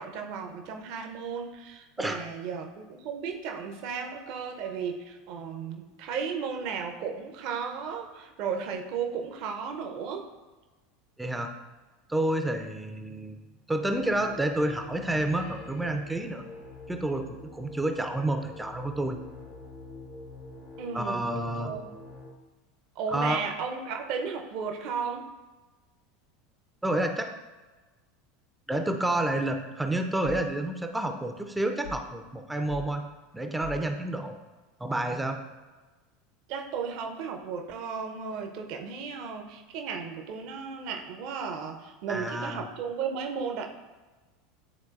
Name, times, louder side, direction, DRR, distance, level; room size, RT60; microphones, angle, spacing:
voice 1, 0.0-10.3 20.8-21.2 21.6-22.0 23.0-25.2 36.5-43.7, right 6 dB, 50° right, 4 dB, 0.6 m, -34 dB
voice 2, 11.2-11.5 12.1-13.4 13.7-16.4 16.9-19.2 20.9-21.7 23.1-23.4 26.8-27.3 28.7-33.0 33.3-34.3 34.8-35.4 42.1-42.7, right 1 dB, 10° right, 5 dB, 0.5 m, -29 dB
sound 1, 13.9-22.3, left 3 dB, 60° left, 1.0 m, -46 dB
sound 2, 30.2-30.6 31.8-32.2 32.7-32.9 33.6-33.9, left 2 dB, 85° left, 0.7 m, -42 dB
11.0 x 3.8 x 2.4 m, 1.2 s
figure-of-eight pair, 80°, 0 cm